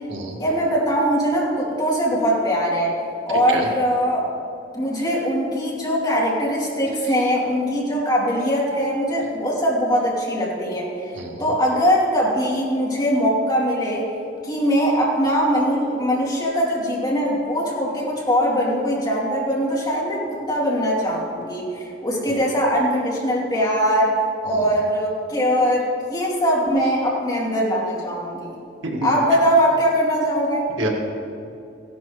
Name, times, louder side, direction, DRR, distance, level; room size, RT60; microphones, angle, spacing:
voice 1, 0.4-2.9 3.3-4.3 4.7-11.1 11.4-14.1 14.4-24.1 24.4-28.6 29.0-30.6, equal, 25° left, -5 dB, 2.7 m, -21 dB
voice 2, 11.1-11.5 22.3-22.4 24.5-24.6 28.8-29.1 30.8-30.9, right 1 dB, 85° right, 0 dB, 1.7 m, -28 dB
16.0 x 11.5 x 3.1 m, 2.6 s
head